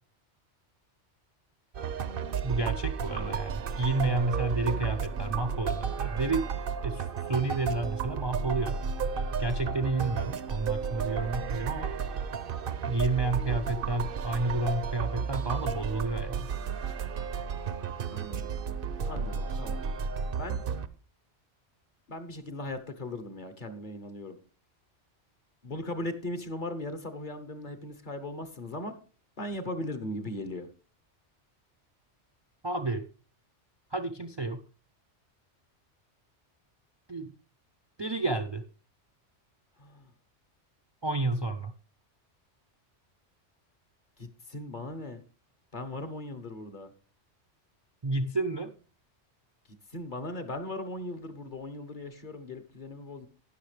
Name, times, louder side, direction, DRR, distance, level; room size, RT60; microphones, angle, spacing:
sound 1, 1.7-20.9, right 6 dB, 55° right, 0.8 m, -33 dB
voice 1, 2.4-6.5 6.8-8.8 9.4-12.0 12.9-16.4 32.6-33.1 33.9-34.6 37.1-37.3 38.0-38.6 41.0-41.7 48.0-48.7, right 2 dB, 35° right, 7 dB, 0.5 m, -30 dB
voice 2, 3.0-3.5 18.1-18.5 19.1-19.8 20.4-20.6 22.1-24.4 25.6-28.9 29.4-30.7 39.8-40.1 44.2-45.2 45.7-46.9 49.9-53.3, left 1 dB, 45° left, 9 dB, 1.1 m, -38 dB
12.0 x 9.6 x 3.3 m, 0.36 s
omnidirectional pair, 1.2 m